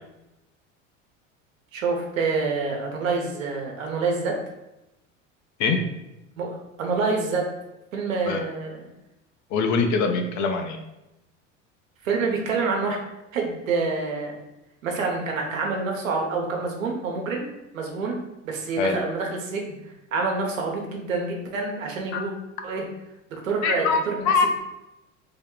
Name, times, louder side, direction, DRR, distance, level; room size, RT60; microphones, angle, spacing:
voice 1, 1.7-4.4 6.4-7.5 7.9-8.9 12.0-13.0 13.3-14.4 14.8-17.4 17.7-18.2 18.4-19.7 20.1-22.3 22.6-22.8 23.3-24.2, right 4 dB, 90° right, 1 dB, 0.9 m, -27 dB
voice 2, 9.5-10.8 18.8-19.0 22.1-22.2 23.6-24.6, left 4 dB, 50° left, 5 dB, 0.6 m, -23 dB
3.5 x 2.2 x 3.6 m, 0.93 s
hypercardioid pair, 85°, 38 cm